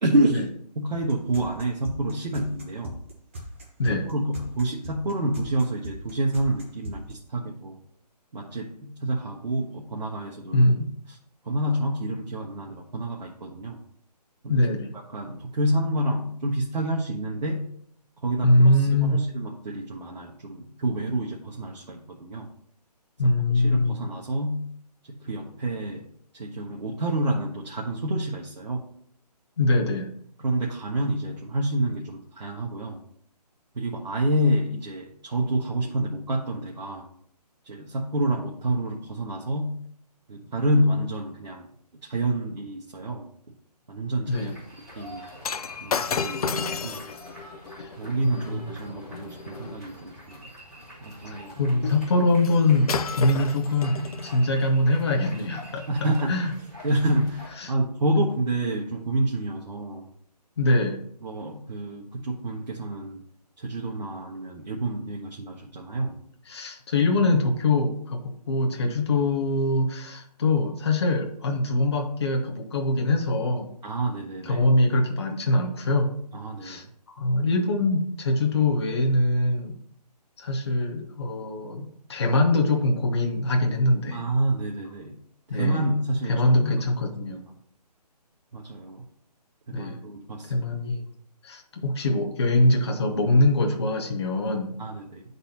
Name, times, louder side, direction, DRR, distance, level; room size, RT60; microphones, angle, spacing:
voice 1, 0.0-3.0 3.9-7.8 8.3-10.6 11.4-13.8 14.4-14.6 15.1-17.7 18.2-22.5 23.2-24.7 25.1-26.1 26.3-28.9 30.4-33.0 33.7-37.1 37.7-39.8 40.3-41.7 42.1-43.3 43.9-44.5 45.0-45.2 45.8-47.0 48.0-50.4 51.0-51.5 55.9-56.3 56.8-60.0 60.7-60.8 61.2-63.2 63.6-66.2 73.8-74.6 76.3-76.8 84.1-85.2 85.5-86.4 87.3-87.4 88.5-89.0 89.7-90.6 94.8-95.2, right 1 dB, 85° right, -2 dB, 1.1 m, -28 dB
sound 1, 0.9-7.1, equal, 20° right, 0.7 m, -39 dB
voice 2, 14.5-14.9 18.4-19.2 23.2-24.0 29.6-30.1 44.3-44.5 48.2-48.7 51.3-55.8 56.3-56.5 57.6-57.7 60.6-61.0 66.5-68.2 68.5-73.7 74.4-76.1 76.6-76.8 77.2-79.7 80.4-84.2 85.5-85.8 86.3-87.5 89.7-90.1 90.5-91.0 91.4-94.7, left 2 dB, 40° left, 2 dB, 0.8 m, -23 dB
sound 2, 44.3-57.5, equal, ahead, 2.2 m, -46 dB
Shatter, 45.4-49.8 52.4-52.6 52.9-54.4 55.1-55.3, left 5 dB, 60° left, 0.4 m, -32 dB
10.0 x 4.0 x 2.8 m, 0.66 s
hypercardioid pair, 170°, 21 cm